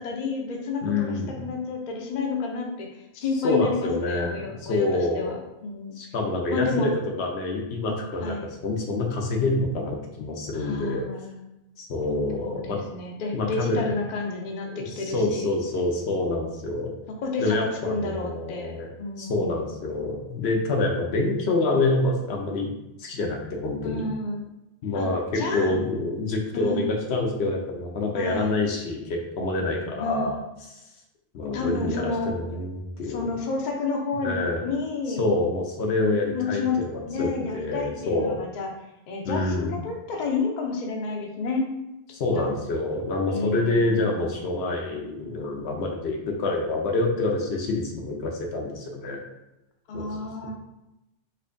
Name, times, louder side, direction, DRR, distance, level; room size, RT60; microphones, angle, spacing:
voice 1, 0.0-2.9 3.1-6.0 6.5-6.9 8.2-8.5 10.5-11.3 12.4-15.5 17.2-17.6 17.8-18.7 19.0-19.6 23.8-24.5 24.9-25.1 25.3-25.8 26.5-26.9 28.1-28.6 30.0-30.4 31.5-32.3 33.0-35.2 36.3-36.8 37.0-38.7 39.1-41.7 42.4-42.5 43.3-44.1 49.9-50.5, left 4 dB, 55° left, 1 dB, 0.6 m, -30 dB
voice 2, 0.8-1.4 3.4-5.3 6.0-6.9 7.2-11.0 11.8-12.8 13.3-13.9 14.7-16.9 17.4-18.9 19.2-22.7 23.0-24.0 24.8-30.4 31.3-33.3 34.2-34.6 35.2-38.4 39.2-39.7 42.1-49.2 49.9-50.1, left 2 dB, 80° left, 1 dB, 0.9 m, -27 dB
4.3 x 2.6 x 2.5 m, 0.91 s
omnidirectional pair, 1.1 m